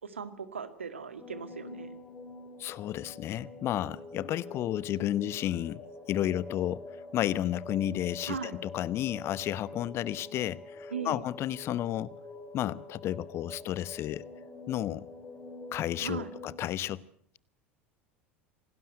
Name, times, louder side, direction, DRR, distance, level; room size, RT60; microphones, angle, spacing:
voice 1, 0.0-2.0 8.3-8.6 10.9-11.2 16.0-16.3, right 6 dB, 75° right, 2.0 m, -38 dB
sound 1, 1.2-16.6, left 2 dB, 25° left, 4.8 m, -46 dB
voice 2, 2.6-6.8 7.1-12.1 12.5-14.2 14.7-15.1 15.7-17.0, left 12 dB, 40° left, 1.0 m, -32 dB
26.5 x 18.5 x 7.9 m
figure-of-eight pair, 75°, 7 cm